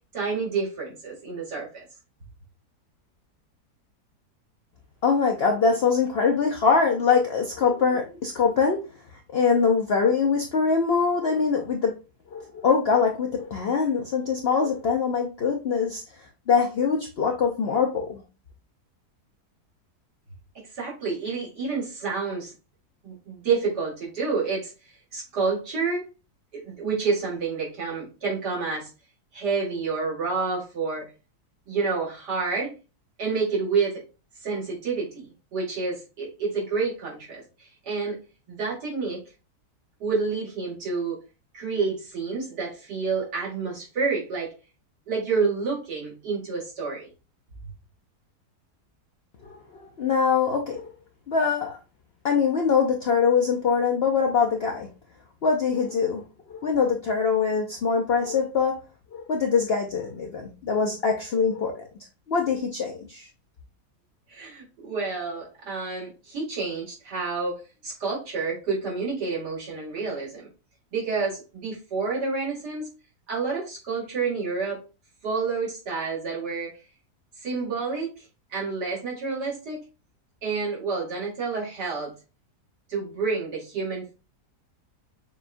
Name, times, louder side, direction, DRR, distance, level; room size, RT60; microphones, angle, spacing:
voice 1, 0.1-1.8 20.7-22.5 23.0-24.7 25.1-26.1 26.5-28.9 29.3-31.0 31.7-32.7 33.2-34.0 34.4-38.2 38.5-39.2 40.0-41.2 41.5-44.5 45.1-47.1 64.3-70.5 70.9-72.9 73.3-74.8 75.2-76.8 77.4-78.2 78.5-79.8 80.4-82.1 82.9-84.1, right 4 dB, 85° right, -4 dB, 2.5 m, -29 dB
voice 2, 5.0-8.8 9.3-11.9 12.3-16.0 16.5-18.2 49.4-50.9 51.3-51.8 52.2-54.9 55.4-56.2 56.5-58.8 59.1-61.7 62.3-63.3, left 5 dB, 70° left, 2 dB, 0.6 m, -23 dB
6.9 x 2.3 x 2.5 m, 0.31 s
omnidirectional pair, 1.7 m